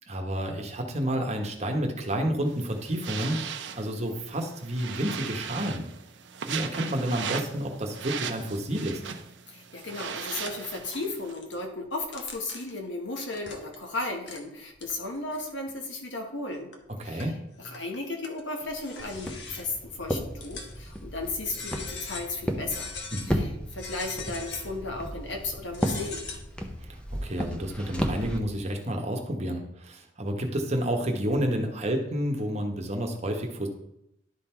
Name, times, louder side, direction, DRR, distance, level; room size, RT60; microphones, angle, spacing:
voice 1, 0.1-3.4 3.7-5.8 6.4-9.0 17.0-17.3 23.1-23.4 27.2-33.7, equal, 35° right, 2 dB, 1.1 m, -30 dB
sound 1, 2.5-11.3, right 7 dB, 75° right, 0.7 m, -38 dB
voice 2, 9.5-16.7 17.0-17.3 17.6-22.9 23.3-23.5 23.7-26.2, left 2 dB, 85° left, 2 dB, 1.5 m, -35 dB
sound 2, 9.8-11.6 12.0-12.9 13.3-13.9 14.3-14.4 14.7-15.7 16.3-16.4 16.7-17.4 17.7-19.8 20.4-21.0 21.4-22.4 22.7-23.3 23.8-24.8 25.7-26.4, left 4 dB, 65° left, 1.1 m, -41 dB
Walk footsteps, 19.0-28.4, equal, 5° left, 0.7 m, -34 dB
11.0 x 3.9 x 4.5 m, 0.79 s
head